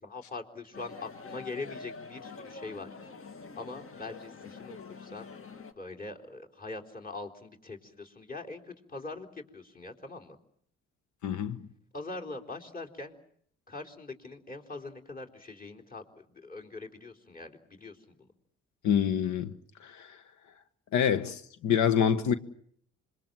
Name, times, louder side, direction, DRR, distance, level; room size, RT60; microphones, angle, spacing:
voice 1, 0.0-2.9 3.6-5.3 5.8-10.4 11.9-13.1 13.7-18.3, left 3 dB, 30° left, 4.0 m, -42 dB
sound 1, 0.7-5.7, left 4 dB, 45° left, 2.1 m, -46 dB
voice 2, 11.2-11.6 18.8-19.5 19.8-20.2 20.9-22.3, left 8 dB, 75° left, 1.3 m, -26 dB
26.0 x 22.5 x 7.6 m
supercardioid pair, 60°, 29 cm